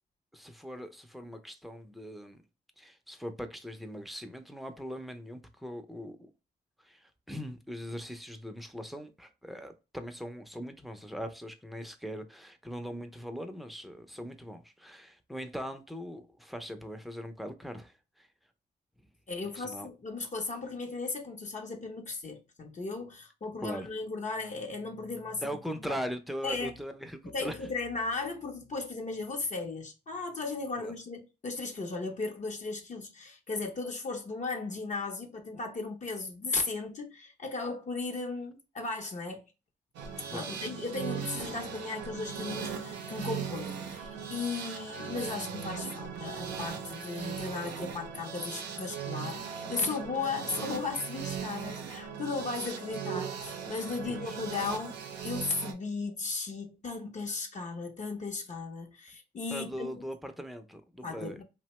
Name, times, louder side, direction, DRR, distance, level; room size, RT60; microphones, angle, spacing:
voice 1, 0.3-2.4 2.8-6.3 6.8-18.3 19.6-19.9 23.6-23.9 25.4-27.5 30.8-30.9 40.3-40.6 54.1-54.4 59.5-61.4, equal, ahead, 0.5 m, -40 dB
voice 2, 19.3-26.0 26.4-26.7 27.3-39.4 40.3-60.0 61.0-61.4, left 3 dB, 45° left, 0.7 m, -36 dB
sound 1, 39.9-55.7, right 7 dB, 90° right, 0.5 m, -39 dB
2.7 x 2.1 x 3.0 m
cardioid pair, 60°, 18 cm